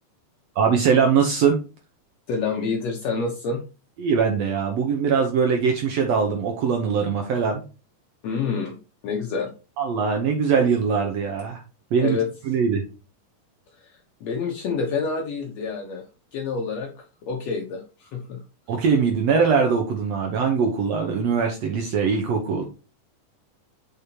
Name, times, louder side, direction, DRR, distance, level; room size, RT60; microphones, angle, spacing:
voice 1, 0.5-1.6 4.0-7.6 9.8-11.6 11.9-12.2 12.5-12.8 18.7-22.7, right 6 dB, 90° right, 2 dB, 1.4 m, -21 dB
voice 2, 2.3-3.6 8.2-8.8 9.0-9.5 12.0-12.3 13.8-13.9 14.2-16.0 16.3-16.9 17.2-18.4, left 5 dB, 85° left, 1 dB, 1.4 m, -27 dB
7.1 x 5.5 x 2.9 m, 0.32 s
omnidirectional pair, 4.4 m